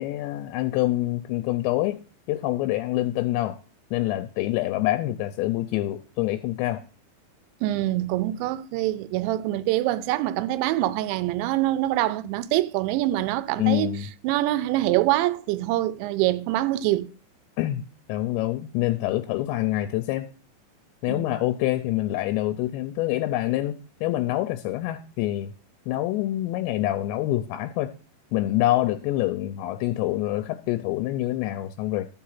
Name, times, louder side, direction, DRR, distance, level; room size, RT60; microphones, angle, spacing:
voice 1, 0.0-2.0 2.3-3.6 3.9-6.8 13.6-14.1 17.6-17.8 18.1-20.3 21.0-25.5 25.9-27.9 28.3-32.1, left 15 dB, 85° left, 2.8 m, -26 dB
voice 2, 7.6-14.0 14.2-17.1 21.1-21.3, right 15 dB, 85° right, 2.9 m, -25 dB
12.0 x 4.8 x 5.7 m
omnidirectional pair, 5.2 m